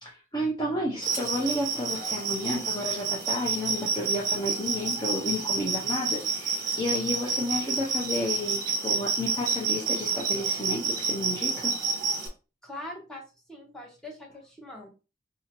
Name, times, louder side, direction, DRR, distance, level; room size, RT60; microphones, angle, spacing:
voice 1, 0.0-11.7, left 1 dB, 20° left, -3 dB, 0.7 m, -31 dB
sound 1, 1.0-12.3, right 4 dB, 45° right, 1.4 m, -29 dB
voice 2, 12.6-13.2 13.5-14.9, left 1 dB, 5° left, -2 dB, 1.1 m, -42 dB
4.8 x 2.8 x 2.9 m, 0.31 s
head